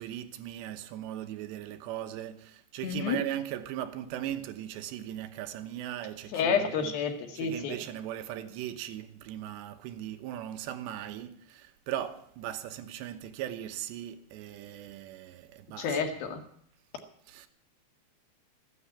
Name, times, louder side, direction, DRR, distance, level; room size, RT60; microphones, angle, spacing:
voice 1, 0.0-6.9 7.3-16.0 17.3-17.5, right 12 dB, 80° right, 3.2 m, -38 dB
voice 2, 2.8-3.2 6.3-7.8 15.8-16.4, left 6 dB, 60° left, 3.4 m, -29 dB
15.0 x 9.4 x 8.7 m
omnidirectional pair, 5.1 m